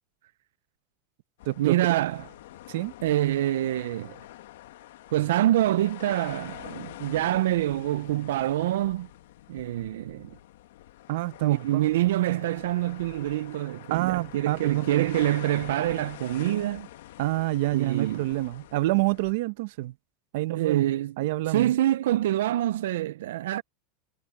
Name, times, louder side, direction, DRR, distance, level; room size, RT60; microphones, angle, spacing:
sound 1, 1.4-19.3, left 14 dB, 80° left, 1.4 m, -46 dB
voice 1, 1.6-2.3 3.0-4.2 5.1-9.1 9.5-10.4 11.4-16.9 17.7-18.3 20.5-21.1 21.5-23.6, right 14 dB, 90° right, 0.4 m, -26 dB
voice 2, 11.1-11.9 13.9-15.1 17.2-19.9 20.3-20.8 21.2-21.7, right 18 dB, 60° right, 0.8 m, -27 dB
supercardioid pair, 170°, 0 cm